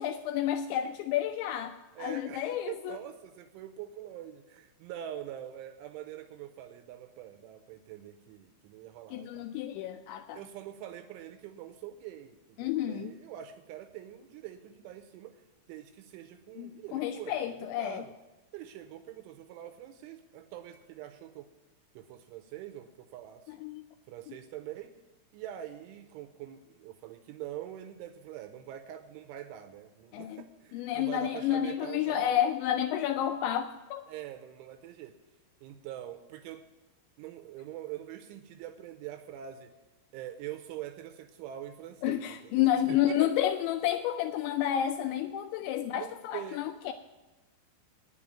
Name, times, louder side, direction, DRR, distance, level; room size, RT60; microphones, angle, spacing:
voice 1, 0.0-3.0 9.1-10.4 12.6-13.1 16.6-18.0 23.6-23.8 30.1-30.4 30.7-34.0 42.0-46.9, left 11 dB, 85° left, 7 dB, 2.7 m, -30 dB
voice 2, 1.9-9.5 10.3-15.4 15.7-18.1 18.5-21.5 22.0-23.6 24.1-24.9 25.3-32.4 34.1-35.2 35.6-36.6 37.2-39.7 40.1-43.3 45.6-46.7, right 11 dB, 85° right, 7 dB, 3.1 m, -44 dB
10.0 x 7.1 x 8.4 m, 1.1 s
omnidirectional pair, 5.6 m